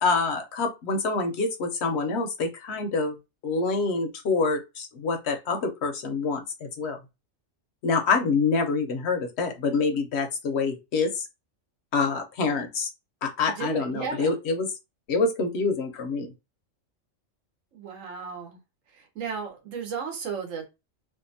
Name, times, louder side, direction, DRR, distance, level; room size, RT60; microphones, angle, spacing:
voice 1, 0.0-3.1 3.4-7.0 7.8-11.3 11.9-12.9 13.2-14.7 15.1-16.3, left 4 dB, 65° left, 0.7 m, -26 dB
voice 2, 13.5-14.3 17.7-18.6 18.9-20.7, right 6 dB, 80° right, 1.2 m, -34 dB
2.7 x 2.3 x 2.6 m
omnidirectional pair, 1.3 m